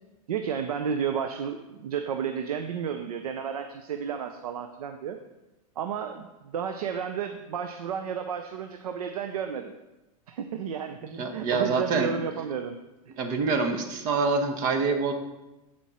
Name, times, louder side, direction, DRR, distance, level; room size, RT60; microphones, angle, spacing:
voice 1, 0.3-5.2 5.8-9.7 10.3-11.0 11.3-12.8 13.1-13.2, right 7 dB, 85° right, 7 dB, 0.6 m, -32 dB
voice 2, 11.0-12.1 13.2-15.1, right 4 dB, 45° right, 6 dB, 1.2 m, -26 dB
12.0 x 4.4 x 4.3 m, 1.0 s
hypercardioid pair, 115°, 19 cm